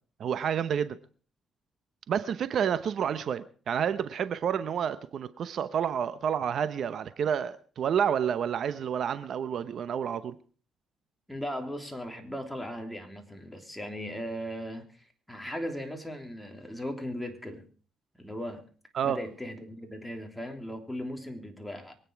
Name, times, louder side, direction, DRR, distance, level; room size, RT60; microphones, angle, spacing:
voice 1, 0.2-1.0 2.1-10.4 18.9-19.2, right 8 dB, 60° right, 0.9 m, -29 dB
voice 2, 11.3-17.7 18.2-18.6 19.0-22.0, equal, 5° left, 3.3 m, -38 dB
24.0 x 9.3 x 4.6 m
cardioid pair, 90°, 0 cm